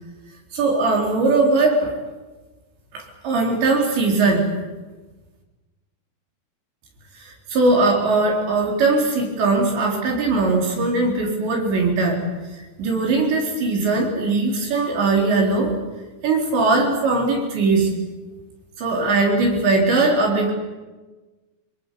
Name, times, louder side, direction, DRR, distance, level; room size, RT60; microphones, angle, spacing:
voice 1, 0.5-1.9 2.9-4.5 7.2-12.2 12.8-15.7 16.2-17.9 18.8-20.5, right 3 dB, 75° right, 0 dB, 6.3 m, -20 dB
24.0 x 22.5 x 8.4 m, 1.2 s
omnidirectional pair, 5.1 m